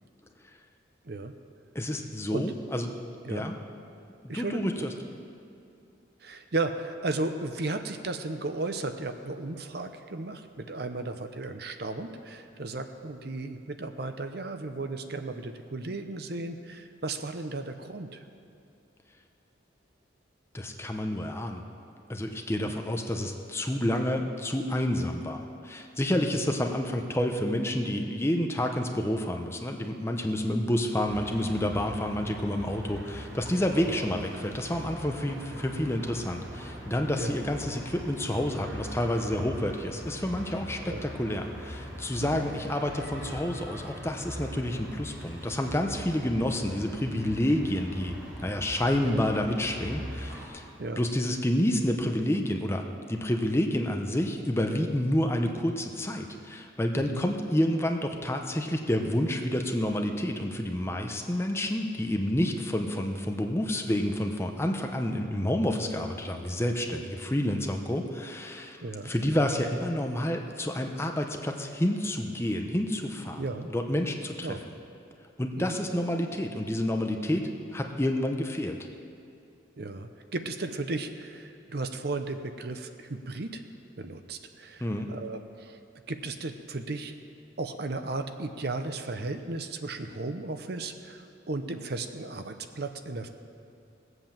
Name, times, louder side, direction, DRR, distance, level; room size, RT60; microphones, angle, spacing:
voice 1, 1.7-2.9 3.3-3.5 4.2-4.9 20.5-21.6 22.1-48.1 48.4-50.6 51.0-74.5 75.4-78.8 84.8-85.1, left 1 dB, 15° left, 3 dB, 0.8 m, -29 dB
voice 2, 4.3-4.6 6.2-18.2 22.6-22.7 33.8-34.0 37.2-37.3 40.9-41.1 42.2-42.4 49.0-49.2 50.8-51.0 56.9-57.2 68.8-69.1 73.4-73.7 74.4-74.6 75.6-75.7 79.8-83.6 84.0-85.8 86.1-87.1 87.6-93.3, right 2 dB, 55° right, 7 dB, 0.7 m, -35 dB
sound 1, 31.0-50.5, equal, 85° right, 3.4 m, -41 dB
18.0 x 8.0 x 7.3 m, 2.6 s
head